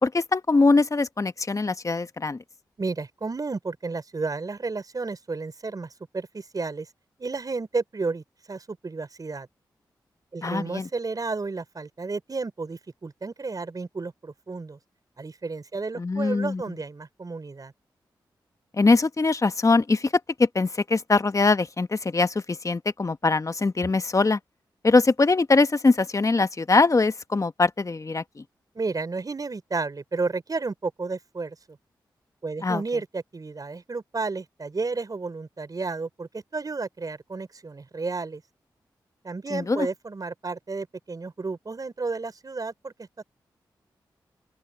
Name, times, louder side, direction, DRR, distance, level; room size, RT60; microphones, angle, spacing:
voice 1, 0.0-2.4 10.4-10.9 16.0-16.6 18.7-20.1 20.4-24.4 24.8-28.4 32.6-32.8 39.5-39.9, left 3 dB, 40° left, 1.2 m, -22 dB
voice 2, 2.8-6.9 7.2-9.5 10.3-14.8 15.2-17.7 28.7-31.6 32.4-38.4 39.2-43.1, right 3 dB, 45° right, 5.1 m, -32 dB
open air
cardioid pair, 50°, 9 cm